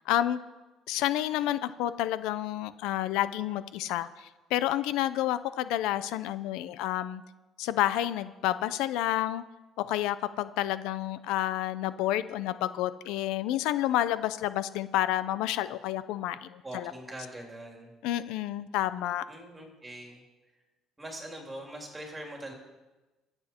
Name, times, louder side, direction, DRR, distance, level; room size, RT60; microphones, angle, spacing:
voice 1, 0.1-0.4 0.9-7.2 7.6-9.4 9.8-16.9 18.0-19.2, left 13 dB, 85° left, 14 dB, 0.5 m, -29 dB
voice 2, 16.6-17.9 19.3-20.2 21.0-22.5, right 1 dB, 10° right, 0 dB, 2.9 m, -42 dB
24.0 x 8.1 x 4.4 m, 1.1 s
cardioid pair, 150°, 0 cm